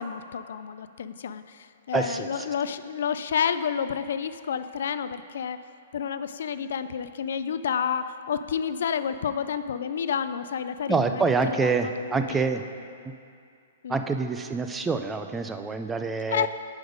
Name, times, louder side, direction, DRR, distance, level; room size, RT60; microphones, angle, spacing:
voice 1, 0.0-5.6 5.9-12.4 13.8-14.0 16.3-16.5, left 7 dB, 70° left, 12 dB, 0.3 m, -30 dB
voice 2, 1.9-2.5 10.9-12.6 13.0-13.1 13.9-16.5, right 4 dB, 10° right, 7 dB, 0.3 m, -26 dB
7.9 x 5.1 x 5.0 m, 2.4 s
hypercardioid pair, 155°, 0 cm